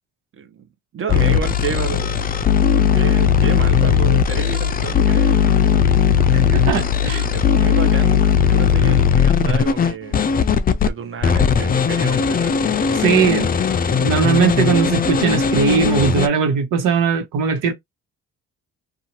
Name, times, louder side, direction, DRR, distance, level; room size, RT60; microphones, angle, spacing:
voice 1, 0.4-0.7 0.9-2.2 2.6-5.8 7.3-10.3 10.7-13.4, right 7 dB, 45° right, 0.7 m, -30 dB
sound 1, 1.1-10.9 11.2-16.3, left 7 dB, 30° left, 0.4 m, -17 dB
voice 2, 6.3-7.3 13.0-13.5 13.7-17.7, right 6 dB, 85° right, 1.0 m, -19 dB
2.8 x 2.3 x 2.9 m
cardioid pair, 90°, 30 cm